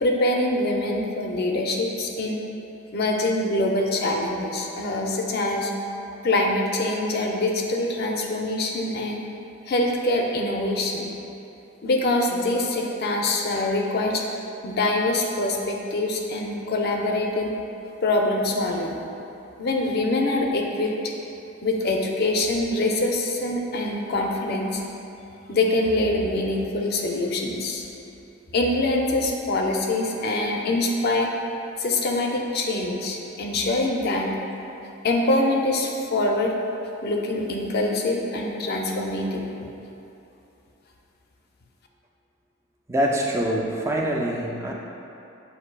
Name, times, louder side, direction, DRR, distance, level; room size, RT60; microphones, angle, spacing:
voice 1, 0.0-2.4 2.9-5.7 6.2-9.2 9.7-11.1 11.8-14.2 14.6-17.5 18.0-19.1 19.6-21.1 21.6-24.8 25.5-27.9 28.5-31.3 31.8-34.4 35.0-36.5 37.0-39.5, left 2 dB, 50° left, 1 dB, 0.4 m, -24 dB
voice 2, 42.9-44.7, right 1 dB, 15° right, -2 dB, 0.3 m, -24 dB
7.7 x 2.6 x 2.2 m, 2.9 s
head